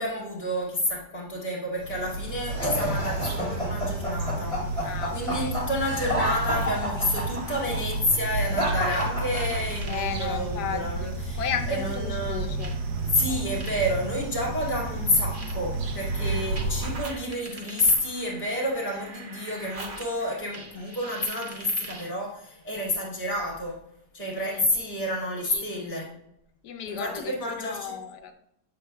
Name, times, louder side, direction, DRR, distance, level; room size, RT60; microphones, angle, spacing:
voice 1, 0.0-11.4 11.7-12.4 13.1-23.8 24.1-26.1 26.9-27.9, left 1 dB, 25° left, -5 dB, 2.0 m, -29 dB
sound 1, 1.8-17.0, right 2 dB, 80° right, 1.4 m, -31 dB
sound 2, 2.5-9.9, equal, 20° right, 2.6 m, -30 dB
voice 2, 2.7-3.0 4.8-5.6 9.9-11.1 11.4-12.7 16.2-16.4 24.3-24.6 25.4-26.2 26.6-28.3, left 8 dB, 75° left, 6 dB, 1.3 m, -35 dB
sound 3, 5.7-7.7 8.8-10.1 11.2-11.3 12.6-22.2, right 3 dB, 45° right, 1.1 m, -44 dB
8.4 x 6.6 x 2.3 m, 0.78 s
omnidirectional pair, 1.8 m